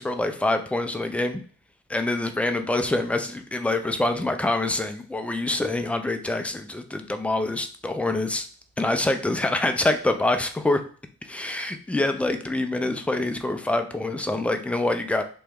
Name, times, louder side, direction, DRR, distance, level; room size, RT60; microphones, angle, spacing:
voice 1, 0.0-1.4 1.9-8.5 8.8-10.8 11.2-15.2, left 2 dB, 5° left, 6 dB, 0.3 m, -25 dB
3.0 x 2.2 x 3.4 m, 0.43 s
cardioid pair, 90°, 30 cm